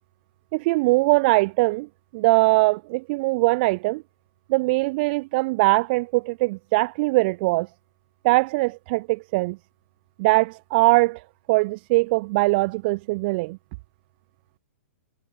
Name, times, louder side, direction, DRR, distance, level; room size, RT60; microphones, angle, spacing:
voice 1, 0.5-1.9 2.1-4.0 4.5-7.7 8.2-9.6 10.2-11.2 11.5-13.6, right 24 dB, 45° right, 2.4 m, -21 dB
hypercardioid pair, 130°, 8 cm